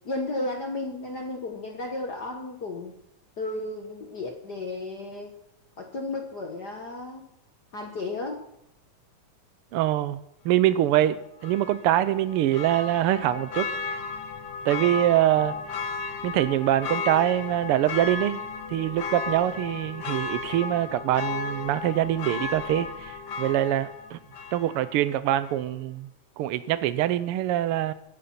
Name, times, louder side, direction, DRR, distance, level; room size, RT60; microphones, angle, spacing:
voice 1, 0.0-2.9 3.4-5.3 5.8-7.2 7.7-8.4, left 2 dB, 45° left, 2 dB, 1.5 m, -33 dB
voice 2, 9.7-13.7 14.6-15.6 16.2-18.4 18.7-24.2 24.5-26.1 26.4-27.9, right 13 dB, 80° right, 14 dB, 1.3 m, -24 dB
Church bell, 11.4-25.1 25.4-25.5, left 4 dB, 90° left, 0.9 m, -34 dB
23.0 x 10.5 x 4.3 m, 0.79 s
omnidirectional pair, 3.3 m